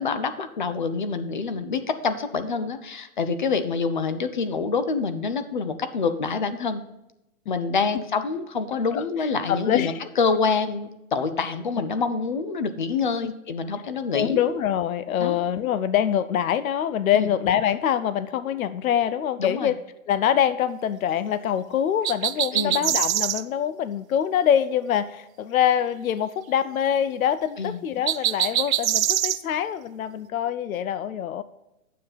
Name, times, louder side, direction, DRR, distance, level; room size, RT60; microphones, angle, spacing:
voice 1, 0.0-6.8 7.5-14.4 15.2-15.4 17.1-17.3 19.4-19.7 22.5-22.8 27.6-27.8, left 4 dB, 35° left, 11 dB, 0.5 m, -26 dB
voice 2, 9.5-9.9 13.2-13.3 14.1-19.7 20.1-31.4, left 9 dB, 75° left, 15 dB, 0.7 m, -24 dB
sound 1, 22.0-23.4 28.1-29.4, right 12 dB, 75° right, 0.6 m, -23 dB
9.3 x 7.5 x 3.9 m, 0.91 s
hypercardioid pair, 175°, 42 cm